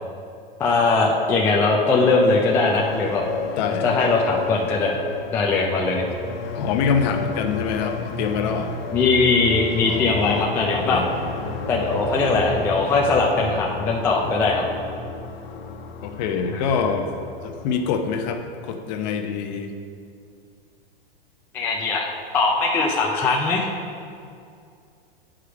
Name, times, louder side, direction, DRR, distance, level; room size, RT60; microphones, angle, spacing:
voice 1, 0.6-3.2 3.8-5.0 5.3-6.1 8.9-11.0 11.7-14.7 16.5-16.6 21.5-23.7, left 3 dB, 10° left, -2 dB, 0.3 m, -20 dB
sound 1, 2.0-18.9, left 3 dB, 90° left, 1.0 m, -33 dB
voice 2, 6.5-8.7 9.8-10.5 10.9-11.1 16.0-17.1 17.4-19.7, left 6 dB, 45° left, 6 dB, 0.8 m, -25 dB
7.8 x 5.0 x 5.8 m, 2.4 s
supercardioid pair, 145°, 29 cm